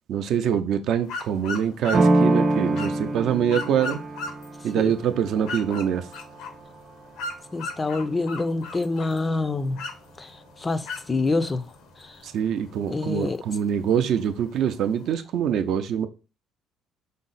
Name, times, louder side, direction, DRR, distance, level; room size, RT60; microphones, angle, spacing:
voice 1, 0.1-4.0 4.6-6.1 12.2-16.1, right 8 dB, 65° right, 0.4 m, -24 dB
sound 1, 1.0-15.1, left 4 dB, 85° left, 0.7 m, -39 dB
sound 2, 1.9-7.5, right 2 dB, 40° right, 0.9 m, -26 dB
voice 2, 7.5-9.8 10.2-11.7 12.0-12.2 12.9-13.4, left 3 dB, 20° left, 0.3 m, -27 dB
5.2 x 2.0 x 3.9 m
cardioid pair, 110°, 0 cm